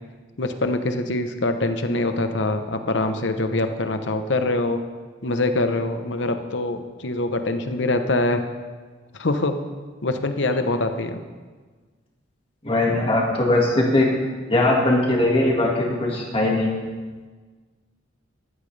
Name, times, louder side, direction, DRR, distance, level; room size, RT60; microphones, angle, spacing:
voice 1, 0.4-4.8 5.2-8.4 9.1-9.6 10.0-11.2, left 2 dB, 65° left, 8 dB, 0.9 m, -24 dB
voice 2, 12.6-14.1 14.5-16.8, left 2 dB, 30° left, -2 dB, 2.0 m, -20 dB
14.0 x 12.5 x 3.4 m, 1.4 s
head